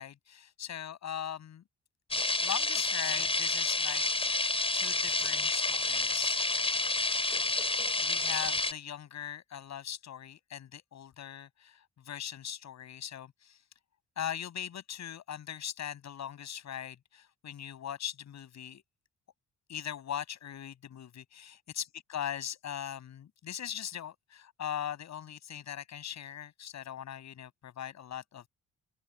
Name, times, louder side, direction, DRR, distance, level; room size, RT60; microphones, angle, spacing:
voice 1, 0.0-1.6 2.4-4.0 4.7-6.4 8.0-13.6 14.2-18.8 19.7-28.5, left 10 dB, 65° left, 7.1 m, -40 dB
sound 1, 2.1-8.7, left 3 dB, 20° left, 4.8 m, -29 dB
open air
cardioid pair, 90°, 30 cm